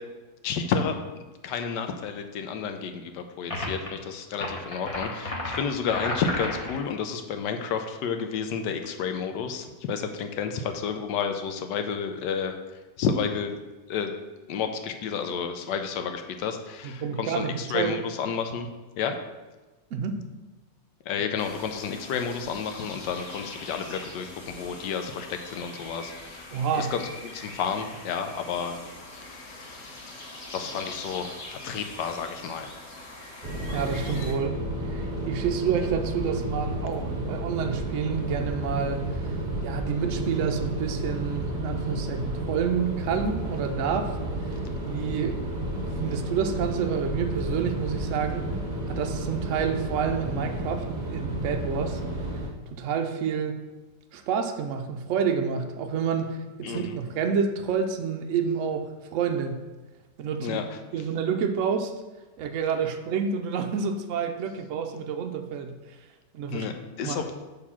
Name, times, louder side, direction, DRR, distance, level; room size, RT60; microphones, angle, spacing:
voice 1, 0.4-1.0 1.4-12.5 13.0-13.6 13.9-14.1 14.5-18.7 19.0-19.1 21.1-26.5 26.7-28.8 29.1-30.3 30.5-32.8 56.6-57.0 60.4-60.8 66.5-67.2, left 6 dB, 80° left, 6 dB, 1.2 m, -31 dB
sound 1, 3.5-3.9 4.3-6.8, left 1 dB, 30° left, 0.7 m, -32 dB
voice 2, 17.0-17.9 19.9-20.2 26.5-26.9 33.7-34.6 34.9-39.3 39.6-44.1 44.9-45.4 45.8-48.5 48.9-50.8 51.1-52.0 52.7-53.6 54.1-59.6 60.2-60.6 60.9-61.9 62.4-65.7 66.3-66.7 67.0-67.2, right 6 dB, 75° right, 5 dB, 0.7 m, -29 dB
sound 2, 21.4-34.3, left 2 dB, 50° left, 1.6 m, -43 dB
sound 3, 33.4-52.5, right 1 dB, 35° right, 0.8 m, -31 dB
6.6 x 3.5 x 5.7 m, 1.2 s
omnidirectional pair, 1.9 m